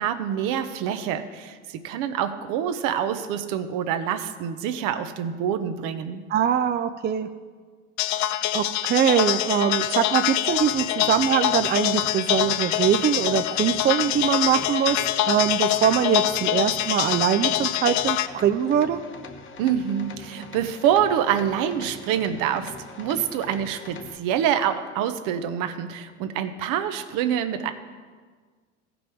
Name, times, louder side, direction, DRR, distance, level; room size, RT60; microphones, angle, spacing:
voice 1, 0.0-6.2 19.6-27.7, right 9 dB, 60° right, 9 dB, 0.9 m, -26 dB
voice 2, 6.3-7.3 8.2-8.3 8.5-15.0 15.3-19.0, right 9 dB, 30° right, 9 dB, 0.5 m, -23 dB
sound 1, 8.0-18.3, left 14 dB, 50° left, 0.5 m, -25 dB
sound 2, 10.5-24.2, left 4 dB, 35° left, 1.0 m, -43 dB
15.5 x 5.3 x 4.6 m, 1.5 s
hypercardioid pair, 75°, 36 cm